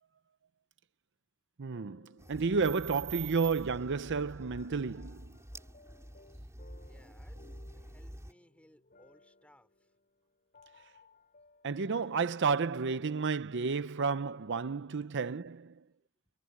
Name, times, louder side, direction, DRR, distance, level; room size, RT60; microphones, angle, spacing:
sound 1, 1.6-13.2, left 3 dB, 45° left, 4.7 m, -62 dB
voice 1, 1.6-5.3 11.6-15.7, right 5 dB, 60° right, 0.6 m, -31 dB
sound 2, 2.2-8.3, right 3 dB, 15° right, 4.7 m, -47 dB
voice 2, 6.8-9.9 11.0-11.1 15.8-16.1, left 1 dB, 5° left, 5.4 m, -64 dB
head